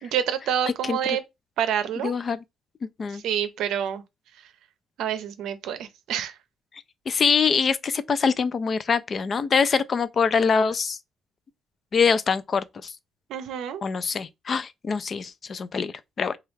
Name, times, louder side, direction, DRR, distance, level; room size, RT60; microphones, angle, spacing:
voice 1, 0.0-1.2 1.6-2.1 3.1-4.0 5.0-6.3 13.3-13.8, right 9 dB, 85° right, 0.5 m, -27 dB
voice 2, 2.0-2.4 3.0-3.2 7.1-11.0 11.9-12.9 13.8-16.4, left 5 dB, 45° left, 0.3 m, -24 dB
3.0 x 2.3 x 3.2 m
cardioid pair, 90°, 0 cm